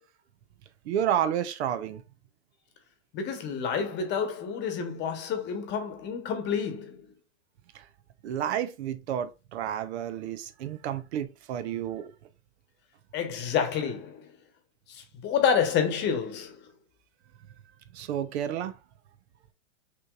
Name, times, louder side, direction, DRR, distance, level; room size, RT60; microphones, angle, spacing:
voice 1, 0.9-2.0 8.2-12.1 17.9-18.7, right 10 dB, 65° right, 0.7 m, -30 dB
voice 2, 3.1-7.1 13.1-14.3 14.9-16.7, left 7 dB, 30° left, 1.0 m, -29 dB
6.0 x 3.1 x 2.4 m
hypercardioid pair, 135°, 35 cm